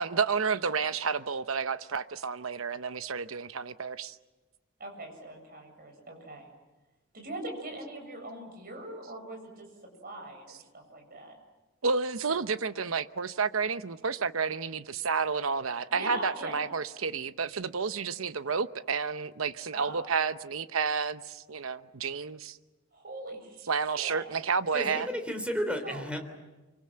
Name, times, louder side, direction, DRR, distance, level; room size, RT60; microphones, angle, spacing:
voice 1, 0.0-4.2 11.8-22.6 23.7-25.1, right 5 dB, 75° right, 0.9 m, -30 dB
voice 2, 4.8-6.5 7.1-9.7 10.0-11.4 15.9-16.6 19.7-20.1 22.9-24.2 25.8-26.0, right 1 dB, 45° right, 7.6 m, -41 dB
voice 3, 24.7-26.2, equal, 5° right, 3.5 m, -32 dB
26.0 x 25.5 x 7.7 m
head